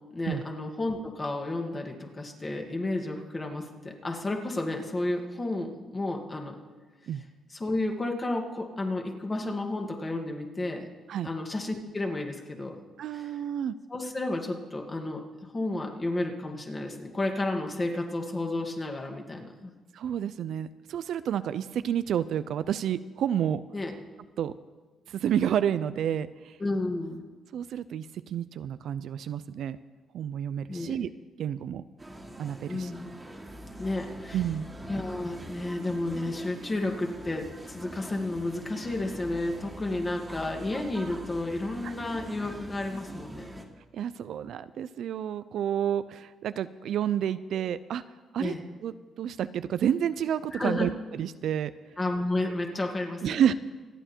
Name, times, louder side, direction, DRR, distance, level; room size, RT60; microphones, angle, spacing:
voice 1, 0.1-6.6 7.5-10.8 11.2-12.8 13.1-13.3 13.9-15.2 15.5-19.7 23.7-23.9 26.6-27.2 30.7-31.0 32.7-33.1 33.8-34.4 34.9-43.6 48.4-48.6 50.5-50.9 52.0-53.5, left 2 dB, 30° left, 2 dB, 2.4 m, -32 dB
voice 2, 13.0-13.7 19.9-23.6 24.4-24.5 25.1-26.6 27.5-29.8 30.1-31.1 31.4-31.8 32.4-32.9 34.3-34.7 41.8-41.9 43.9-48.0 48.3-48.5 48.8-51.7 53.2-53.5, right 9 dB, 70° right, 14 dB, 0.5 m, -30 dB
sound 1, 32.0-43.6, right 1 dB, 15° right, 2.0 m, -43 dB
26.0 x 9.0 x 4.5 m, 1.3 s
cardioid pair, 90°, 0 cm